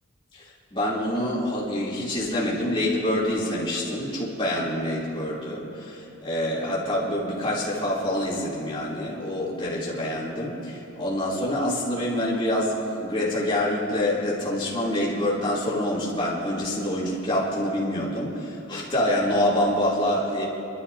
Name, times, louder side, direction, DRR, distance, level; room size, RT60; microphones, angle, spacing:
voice 1, 0.3-20.5, left 1 dB, 25° left, -7 dB, 3.2 m, -26 dB
29.5 x 12.5 x 2.8 m, 2.8 s
head